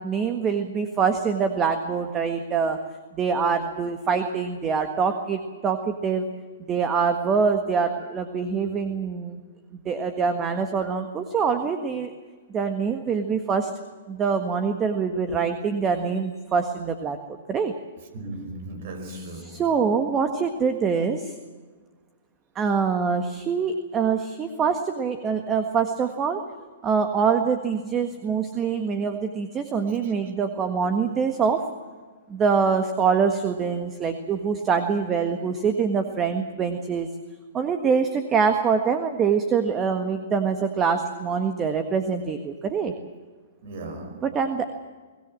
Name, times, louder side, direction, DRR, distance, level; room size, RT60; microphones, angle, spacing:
voice 1, 0.0-2.8 3.1-6.3 6.7-9.4 9.8-12.1 12.5-13.7 14.1-17.7 19.1-21.3 22.5-26.4 26.8-31.6 32.3-37.1 37.5-42.9 44.2-44.6, right 6 dB, 20° right, 1.6 m, -24 dB
voice 2, 18.1-19.6 30.0-30.1 43.6-44.3, right 2 dB, 55° right, 5.3 m, -37 dB
23.5 x 17.5 x 7.6 m
hypercardioid pair, 130°, 0 cm